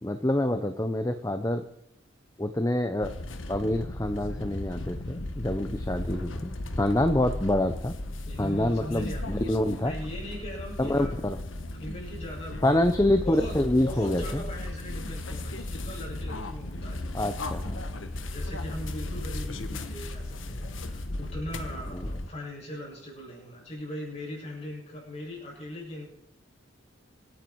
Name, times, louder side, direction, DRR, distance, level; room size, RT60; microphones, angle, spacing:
voice 1, 0.0-1.6 2.4-3.1 3.5-7.9 8.4-9.9 10.8-11.4 12.6-14.4 17.1-17.8 21.9-22.1, left 1 dB, 15° left, 8 dB, 0.7 m, -26 dB
sound 1, 3.0-22.3, left 1 dB, 70° left, 1.2 m, -36 dB
voice 2, 8.3-11.2 11.7-12.8 13.2-17.0 18.2-26.1, equal, 30° left, -3 dB, 7.4 m, -40 dB
25.5 x 9.5 x 4.7 m, 0.75 s
head